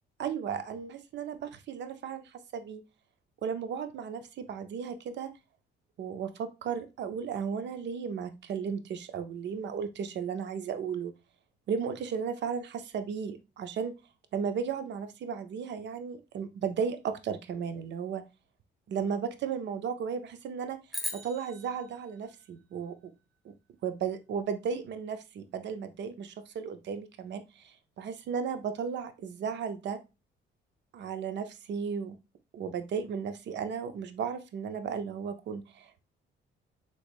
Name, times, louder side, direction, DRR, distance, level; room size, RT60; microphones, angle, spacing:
voice 1, 0.2-2.8 3.4-5.3 6.0-11.1 11.7-13.9 14.3-18.2 18.9-20.8 21.1-23.1 23.4-23.5 23.8-30.0 30.9-32.2 32.5-35.9, right 6 dB, 65° right, 10 dB, 0.5 m, -35 dB
sound 1, 20.9-23.3, left 1 dB, ahead, 0.7 m, -41 dB
3.5 x 3.1 x 2.3 m, 0.27 s
cardioid pair, 90°, 20 cm